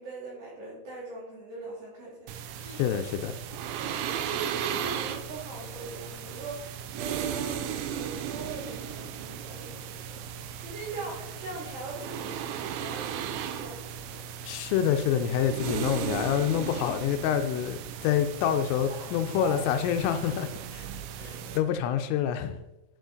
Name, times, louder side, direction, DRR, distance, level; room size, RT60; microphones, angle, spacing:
voice 1, 0.0-3.0 3.8-14.3 18.4-18.5 18.9-19.9 21.2-21.6, right 3 dB, 55° right, -5 dB, 3.1 m, -41 dB
sound 1, 2.3-21.6, right 9 dB, 90° right, 2.6 m, -36 dB
voice 2, 2.7-3.3 14.4-20.9 21.2-22.6, left 9 dB, 85° left, 8 dB, 3.2 m, -27 dB
12.0 x 5.0 x 3.9 m, 0.97 s
omnidirectional pair, 5.9 m